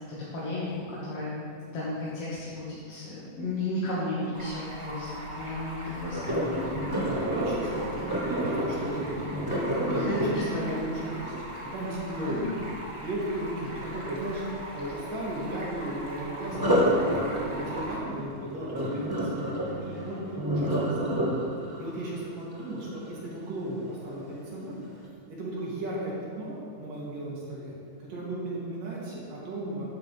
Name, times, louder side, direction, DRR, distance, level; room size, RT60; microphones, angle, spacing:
voice 1, 0.3-1.3 1.7-6.6 9.9-10.7 12.1-12.5, left 2 dB, 50° left, -9 dB, 2.9 m, -33 dB
Stream, 4.3-18.0, equal, 15° right, 1.3 m, -40 dB
Sink (filling or washing), 6.1-12.1 16.5-23.5 24.0-24.3 24.8-24.9, equal, 35° right, 0.3 m, -29 dB
voice 2, 7.0-7.9 8.2-9.2 9.8-11.3 11.7-12.5 13.0-21.4 21.8-24.8 25.4-27.7 28.1-29.9, right 1 dB, 80° right, -7 dB, 4.6 m, -35 dB
13.5 x 11.0 x 3.5 m, 2.3 s
omnidirectional pair, 3.8 m